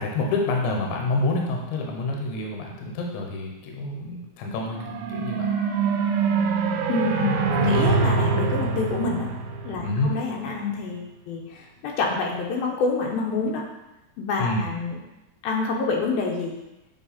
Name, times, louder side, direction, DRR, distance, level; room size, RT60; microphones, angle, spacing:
voice 1, 0.0-5.5 9.8-10.1 14.4-14.7, left 2 dB, 70° left, 0 dB, 2.2 m, -27 dB
sound 1, 4.7-10.2, right 5 dB, 85° right, 2.4 m, -24 dB
voice 2, 6.9-9.3 9.6-13.6 14.2-15.0 15.4-16.6, left 4 dB, 85° left, -1 dB, 2.7 m, -27 dB
8.5 x 3.3 x 4.2 m, 0.97 s
omnidirectional pair, 4.1 m